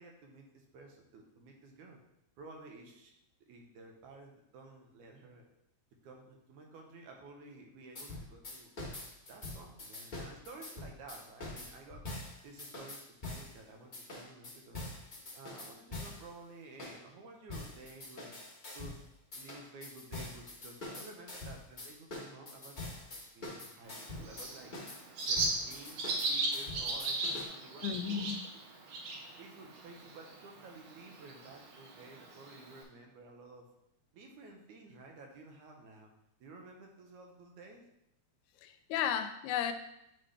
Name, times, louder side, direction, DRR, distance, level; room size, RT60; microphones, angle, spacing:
voice 1, 0.0-2.0 2.4-3.2 3.5-5.5 6.0-8.7 9.3-12.0 12.4-14.9 15.4-18.4 18.7-19.1 19.3-22.9 23.3-24.7 25.2-28.2 29.4-33.7 34.1-36.1 36.4-37.8, right 3 dB, 85° right, 2 dB, 2.5 m, -53 dB
sound 1, 8.0-13.5 13.9-16.3 16.8-17.0 17.5-19.0 19.3-27.4, left 2 dB, 50° left, 0.5 m, -44 dB
Bird, 23.9-32.8, right 2 dB, 65° right, 1.9 m, -38 dB
voice 2, 27.8-28.4 38.6-39.7, left 9 dB, 85° left, 8 dB, 1.9 m, -34 dB
9.5 x 4.0 x 3.3 m, 0.81 s
omnidirectional pair, 3.3 m